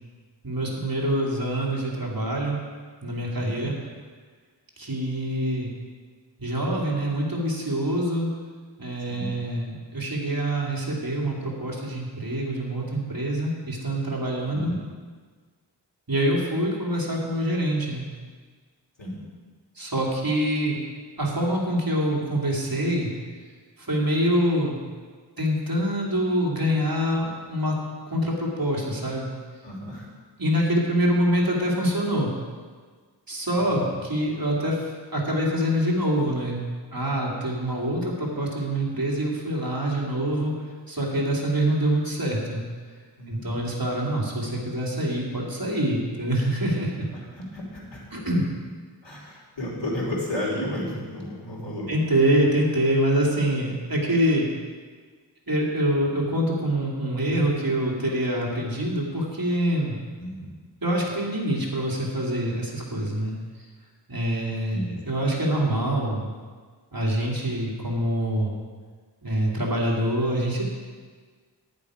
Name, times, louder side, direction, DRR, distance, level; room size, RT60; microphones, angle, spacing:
voice 1, 0.4-2.6 3.0-3.7 4.8-5.7 6.4-8.3 8.8-14.7 16.1-18.0 19.8-20.8 21.2-23.1 23.8-24.8 25.4-27.7 28.1-29.3 30.4-32.3 33.3-34.8 35.1-36.6 36.9-40.5 40.9-42.6 43.3-47.1 48.1-48.4 51.9-54.5 55.5-60.0 60.8-63.3 64.1-66.3 66.9-68.5 69.2-70.6, right 1 dB, 55° right, -3 dB, 2.6 m, -25 dB
voice 2, 3.4-3.7 9.1-9.3 14.5-14.8 19.0-19.2 29.6-30.1 31.2-31.3 33.6-33.9 43.2-43.5 47.1-48.0 49.0-51.9 60.2-60.5 64.7-65.2, left 1 dB, 90° left, -4 dB, 3.1 m, -33 dB
11.0 x 9.9 x 4.9 m, 1.5 s
wide cardioid pair, 45°, 43 cm